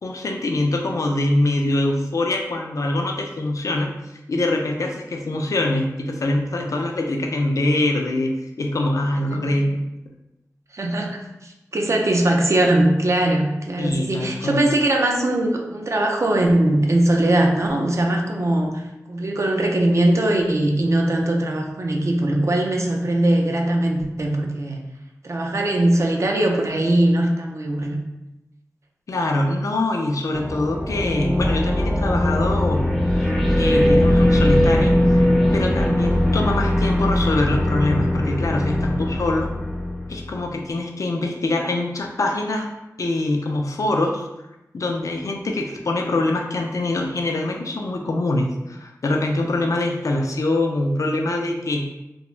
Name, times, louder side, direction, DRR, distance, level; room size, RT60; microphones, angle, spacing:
voice 1, 0.0-9.9 13.8-14.7 29.1-33.3 33.6-39.5 40.1-42.7 43.0-44.3 44.7-51.8, left 2 dB, 60° left, 2 dB, 0.4 m, -24 dB
voice 2, 10.7-18.8 19.1-24.8 25.2-28.0, right 1 dB, 50° right, 1 dB, 0.5 m, -20 dB
sound 1, 30.3-40.5, left 1 dB, ahead, 0.4 m, -20 dB
2.4 x 2.2 x 3.0 m, 0.95 s
cardioid pair, 45°, 6 cm